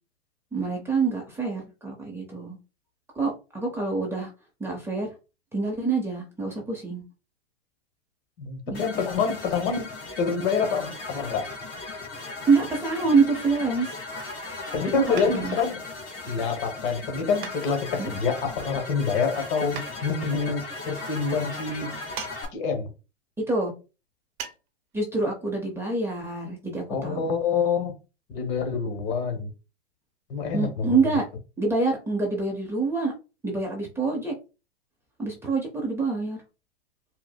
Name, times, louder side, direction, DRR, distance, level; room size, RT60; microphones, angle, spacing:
voice 1, 0.5-2.6 3.1-4.3 4.6-5.1 5.5-7.0 8.7-8.8 12.5-13.9 15.1-15.6 18.0-18.1 23.5-23.7 24.9-27.3 30.5-31.2 31.6-33.1 33.4-34.3 35.2-36.4, right 4 dB, 5° right, 0.6 m, -26 dB
voice 2, 8.4-9.9 10.2-11.5 14.7-15.8 16.3-21.9 22.5-22.9 26.9-28.0 28.3-29.5 30.3-31.1, left 5 dB, 50° left, 1.1 m, -27 dB
sound 1, 8.7-22.5, left 3 dB, 30° left, 1.5 m, -37 dB
sound 2, 15.2-15.7 17.4-18.1 19.8-20.0 22.2-22.4 22.7-22.8 24.4-24.6 24.9-25.0, right 7 dB, 45° right, 0.7 m, -38 dB
4.5 x 2.0 x 2.2 m
hypercardioid pair, 115°, 33 cm